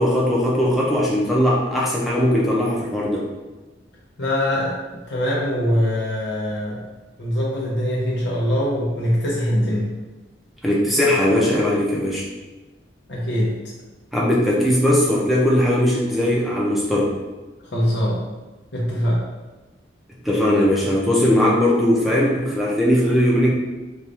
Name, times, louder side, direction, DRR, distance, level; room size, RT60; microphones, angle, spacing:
voice 1, 0.0-3.3 10.6-12.2 14.1-17.1 20.2-23.5, left 1 dB, ahead, -5 dB, 0.8 m, -19 dB
voice 2, 4.2-4.8 5.1-6.8 7.2-9.9 13.1-13.6 17.7-18.2 18.7-19.2, equal, 70° left, -5 dB, 0.9 m, -22 dB
4.5 x 2.6 x 3.4 m, 1.2 s
head